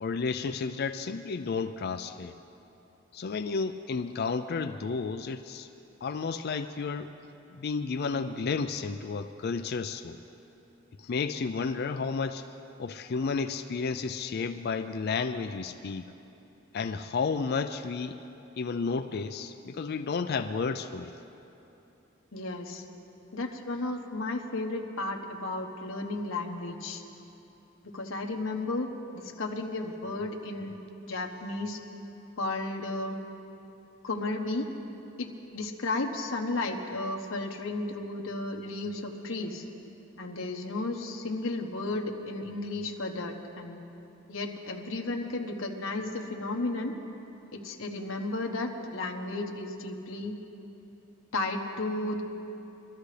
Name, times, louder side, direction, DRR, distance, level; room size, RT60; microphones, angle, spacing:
voice 1, 0.0-2.3 3.1-5.7 6.0-7.1 7.5-10.2 11.0-12.5 12.8-16.1 16.7-18.2 18.6-21.1, left 4 dB, 55° left, 9 dB, 0.4 m, -32 dB
voice 2, 22.3-22.8 23.3-27.0 27.8-28.9 29.1-30.8 31.1-31.8 32.4-33.2 34.0-34.7 35.2-39.6 40.2-43.8 44.3-46.9 47.5-50.3 51.3-52.2, left 2 dB, 75° left, 2 dB, 1.1 m, -33 dB
23.5 x 13.0 x 3.3 m, 2.9 s
head